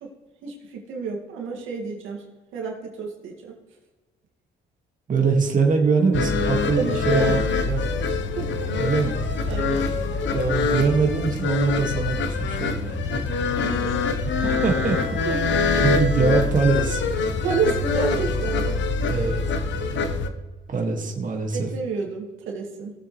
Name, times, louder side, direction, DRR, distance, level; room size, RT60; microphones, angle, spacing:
voice 1, 0.4-2.2 2.5-3.5 6.6-7.5 8.4-8.5 9.4-9.8 13.5-14.1 15.2-15.8 17.4-19.2 21.5-22.9, right 5 dB, 90° right, -1 dB, 2.2 m, -30 dB
voice 2, 5.1-7.4 7.7-7.8 8.8-9.2 10.3-13.2 14.4-15.2 15.8-17.0 19.1-19.4 20.7-21.7, right 4 dB, 40° right, 2 dB, 2.0 m, -23 dB
sound 1, 6.1-20.3, left 4 dB, 70° left, 1.0 m, -24 dB
18.5 x 7.4 x 3.2 m, 1.3 s
cardioid pair, 90°, 20 cm